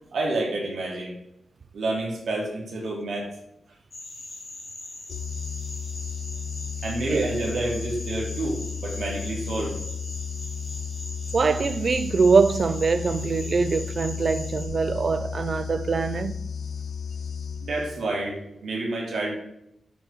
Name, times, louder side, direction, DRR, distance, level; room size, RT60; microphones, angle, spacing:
voice 1, 0.1-1.1 1.7-3.3 6.8-9.8 17.6-19.3, right 2 dB, 80° right, 3.0 m, -29 dB
sound 1, 3.9-14.7, left 2 dB, 35° left, 2.4 m, -41 dB
sound 2, 5.1-18.2, left 6 dB, 90° left, 0.7 m, -34 dB
voice 2, 11.3-16.4, right 4 dB, 45° right, 0.4 m, -23 dB
8.8 x 8.1 x 3.7 m
wide cardioid pair, 145°, 0 cm